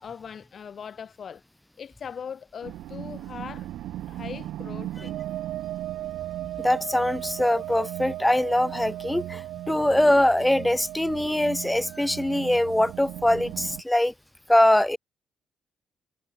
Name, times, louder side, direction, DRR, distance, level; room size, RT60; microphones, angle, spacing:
voice 1, 0.0-1.4 1.8-3.7 4.1-5.1, left 7 dB, 50° left, 4.2 m, -40 dB
sound 1, 2.6-13.8, right 13 dB, 85° right, 0.9 m, -36 dB
voice 2, 6.6-14.1 14.5-15.0, left 1 dB, 5° left, 0.6 m, -22 dB
cardioid pair, 90°, 0 cm